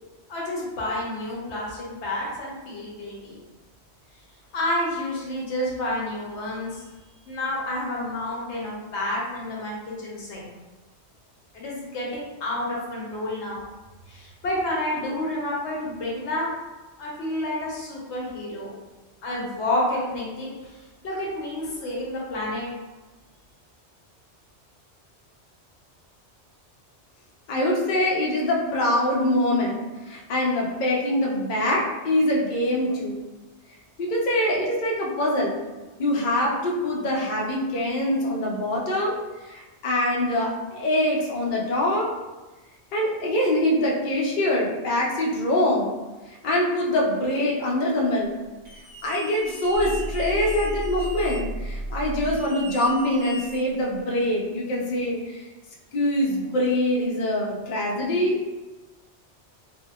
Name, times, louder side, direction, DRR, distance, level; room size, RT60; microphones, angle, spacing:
voice 1, 0.3-3.4 4.5-6.8 7.3-10.5 11.5-13.6 14.1-16.5 17.0-18.7 19.2-20.8 21.0-22.7, left 1 dB, 80° left, -4 dB, 1.0 m, -29 dB
voice 2, 27.5-33.2 34.0-35.6 36.0-39.2 39.4-42.1 42.9-45.9 46.3-48.3 49.0-55.4 55.9-58.4, left 1 dB, 55° left, -3 dB, 0.6 m, -24 dB
sound 1, 48.7-51.4 52.2-54.0, right 1 dB, 50° right, 1.2 m, -41 dB
sound 2, 49.7-52.5, right 1 dB, 65° right, 1.0 m, -32 dB
2.8 x 2.0 x 2.3 m, 1.2 s
omnidirectional pair, 1.1 m